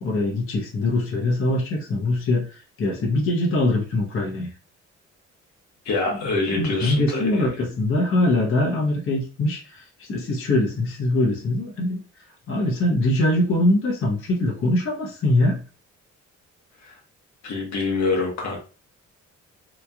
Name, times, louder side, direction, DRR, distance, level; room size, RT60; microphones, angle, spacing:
voice 1, 0.0-4.5 6.1-6.2 6.5-12.0 12.5-15.6, left 1 dB, 45° left, -2 dB, 0.9 m, -23 dB
voice 2, 5.8-7.5 16.8-17.0 17.4-18.6, left 3 dB, 65° left, 0 dB, 1.0 m, -25 dB
3.0 x 2.4 x 2.3 m, 0.35 s
cardioid pair, 90°, 30 cm